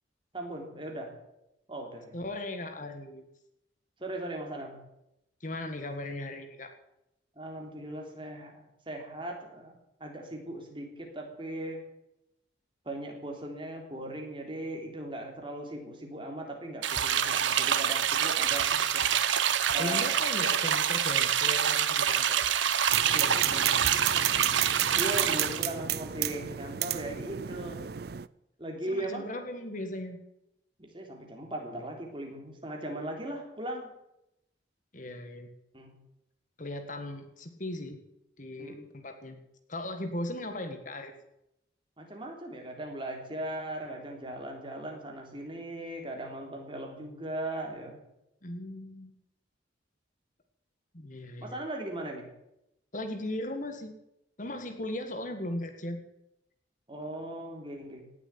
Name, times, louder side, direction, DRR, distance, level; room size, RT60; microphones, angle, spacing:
voice 1, 0.3-1.1 1.7-2.2 4.0-4.8 7.4-11.8 12.9-19.1 19.7-20.1 23.1-23.9 25.0-27.8 28.6-29.2 30.8-33.9 35.7-35.9 38.6-38.9 42.0-48.0 51.4-52.3 56.9-58.0, right 1 dB, 25° right, 2 dB, 3.5 m, -38 dB
voice 2, 2.1-3.3 5.4-6.7 19.8-22.4 28.9-30.2 34.9-35.5 36.6-38.0 38.4-39.4 39.7-41.1 48.4-49.1 50.9-51.6 52.9-53.9 54.4-56.0, left 1 dB, 45° left, 6 dB, 1.8 m, -37 dB
sound 1, 16.8-25.6, right 8 dB, 85° right, 1.1 m, -26 dB
sound 2, 22.9-28.3, right 11 dB, 55° right, 0.5 m, -33 dB
18.0 x 8.0 x 9.8 m, 0.83 s
head